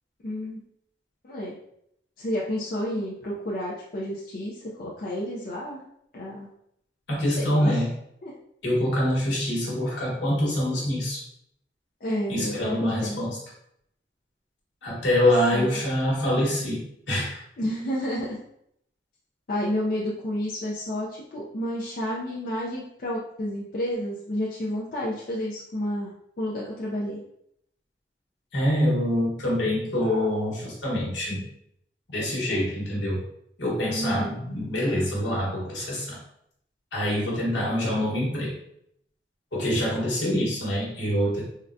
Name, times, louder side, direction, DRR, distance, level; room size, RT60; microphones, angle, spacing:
voice 1, 0.2-0.6 1.2-1.5 2.2-5.8 6.1-6.5 7.4-7.8 8.2-8.3 12.0-13.3 15.5-15.8 17.6-18.4 19.5-26.1 26.4-27.2 33.9-34.4, equal, 50° left, -6 dB, 0.5 m, -30 dB
voice 2, 7.1-7.9 8.6-11.2 12.3-13.4 14.8-17.4 28.5-31.4 32.1-33.2 33.6-36.2 36.9-38.5 39.5-41.4, left 1 dB, 80° left, -5 dB, 1.2 m, -25 dB
3.7 x 2.2 x 2.5 m, 0.74 s
head